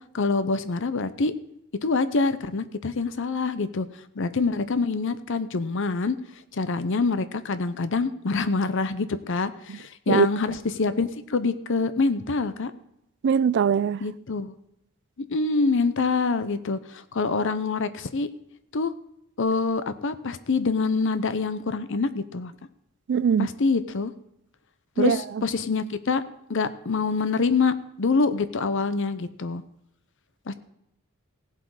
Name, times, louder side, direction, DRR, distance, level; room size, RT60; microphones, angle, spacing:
voice 1, 0.1-1.3 1.8-3.9 4.2-6.2 6.5-12.7 14.0-14.5 15.3-18.3 18.7-18.9 19.4-22.5 23.4-24.1 25.0-26.2 26.5-29.6 30.5-30.6, left 4 dB, 60° left, 0.7 m, -25 dB
voice 2, 13.2-14.0 23.1-23.5 25.0-25.4, right 7 dB, 55° right, 0.3 m, -22 dB
16.5 x 7.5 x 4.8 m
head